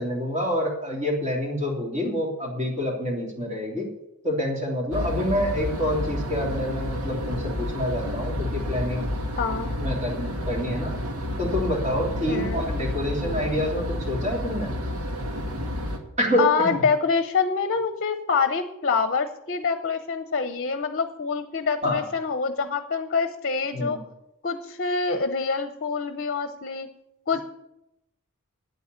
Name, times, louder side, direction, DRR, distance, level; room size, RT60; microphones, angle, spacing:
voice 1, 0.0-3.9 4.2-9.1 9.8-11.0 11.4-14.7 16.2-16.7 21.8-22.0 23.7-24.0, equal, 30° right, -2 dB, 3.0 m, -27 dB
sound 1, 4.9-16.0, left 1 dB, 75° right, 1.9 m, -30 dB
voice 2, 9.4-9.7 12.3-12.6 16.4-24.0 24.4-26.9 27.3-27.4, left 5 dB, 45° left, 9 dB, 0.8 m, -26 dB
9.3 x 8.3 x 9.6 m, 0.87 s
head